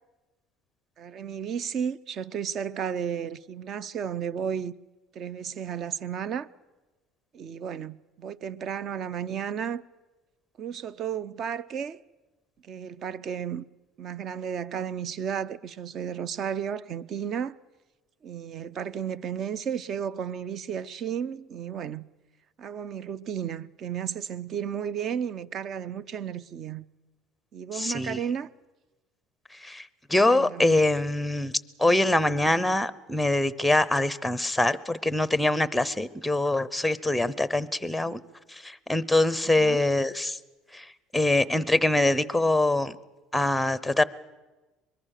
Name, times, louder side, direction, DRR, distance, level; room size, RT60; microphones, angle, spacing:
voice 1, 1.0-4.7 5.1-6.5 7.3-9.8 10.6-12.0 12.6-13.6 14.0-17.6 18.2-22.1 22.6-26.8 27.5-28.5 30.3-30.8 39.4-39.8, right 8 dB, 40° right, 0.6 m, -33 dB
voice 2, 27.7-28.2 29.6-31.5 31.8-38.2 38.5-40.4 40.7-40.9 41.1-43.0 43.3-44.0, left 2 dB, ahead, 0.7 m, -24 dB
23.5 x 21.5 x 6.6 m
cardioid pair, 135°, 0 cm